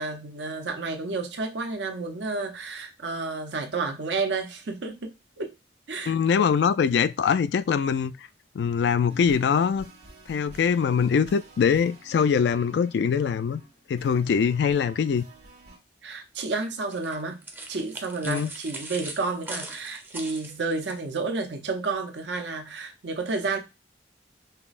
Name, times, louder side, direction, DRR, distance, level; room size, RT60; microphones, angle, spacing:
voice 1, 0.0-5.5 5.9-6.1 16.0-17.4 17.7-23.6, right 3 dB, 80° right, 0.7 m, -31 dB
voice 2, 6.1-8.1 8.5-9.9 10.3-13.6 13.9-15.2 18.3-18.5, left 6 dB, 70° left, 0.3 m, -23 dB
sound 1, 9.1-15.8, right 2 dB, 60° right, 1.5 m, -50 dB
sound 2, 16.9-21.0, right 2 dB, 10° right, 0.5 m, -40 dB
5.5 x 2.0 x 2.4 m
head